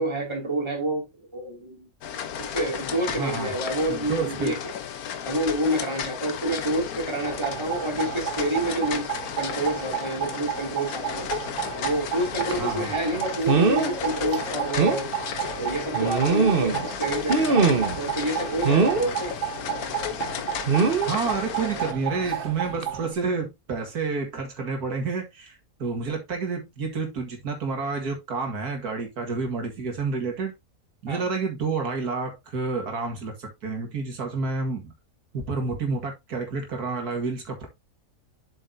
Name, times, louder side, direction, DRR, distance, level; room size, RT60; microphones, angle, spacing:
voice 1, 0.0-1.9 2.4-4.6 5.2-11.3 11.7-15.1 15.6-19.3 31.1-31.2, right 1 dB, 20° right, 2.7 m, -28 dB
sound 1, 2.0-21.9, left 8 dB, 75° left, 1.4 m, -34 dB
voice 2, 3.1-3.5 3.9-4.6 12.6-12.9 21.1-30.5 31.0-34.9 35.3-37.7, right 4 dB, 85° right, 2.4 m, -29 dB
sound 2, 7.2-23.1, right 10 dB, 55° right, 0.9 m, -33 dB
sound 3, 12.5-12.7 13.5-13.9 14.3-14.4 14.8-15.0 15.9-16.9 17.3-18.0 18.6-19.1 20.7-21.1 22.2-22.4 22.8-22.9, right 4 dB, 40° right, 1.2 m, -21 dB
7.7 x 6.7 x 2.7 m
omnidirectional pair, 1.6 m